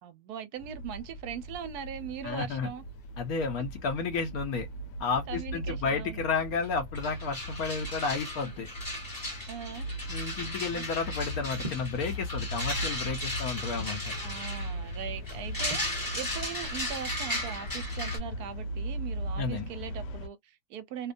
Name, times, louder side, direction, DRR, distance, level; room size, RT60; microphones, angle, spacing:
voice 1, 0.0-2.8 5.3-6.2 9.5-9.9 10.3-10.8 14.2-15.8 16.1-21.1, right 8 dB, 75° right, 1.0 m, -40 dB
sound 1, 0.6-20.3, equal, 85° left, 1.2 m, -39 dB
voice 2, 2.2-2.7 3.2-4.7 5.0-8.7 10.1-14.1 19.4-19.7, left 5 dB, 70° left, 1.0 m, -32 dB
sound 2, 6.6-6.7 6.9-18.2, left 1 dB, 15° left, 0.9 m, -36 dB
sound 3, 11.6-12.0 12.9-14.1 15.7-16.0, right 1 dB, 40° right, 0.6 m, -42 dB
2.7 x 2.1 x 2.4 m
omnidirectional pair, 1.8 m